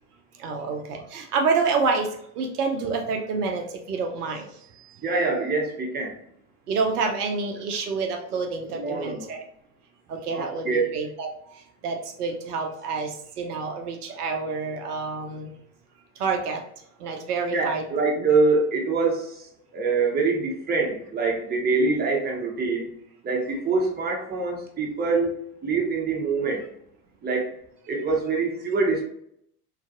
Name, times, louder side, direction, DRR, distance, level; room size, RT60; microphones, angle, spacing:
voice 1, 0.4-4.9 6.7-9.4 10.1-11.3 11.5-15.5 16.2-16.6 17.0-17.8 18.2-18.3, right 4 dB, 80° right, 3 dB, 0.6 m, -28 dB
voice 2, 5.0-6.1 8.7-9.3 10.3-10.9 17.5-19.4 19.7-22.9 23.2-26.7 27.2-27.5 27.9-29.0, right 3 dB, 20° right, -1 dB, 0.8 m, -25 dB
3.1 x 2.4 x 2.4 m, 0.71 s
figure-of-eight pair, 65°, 45 cm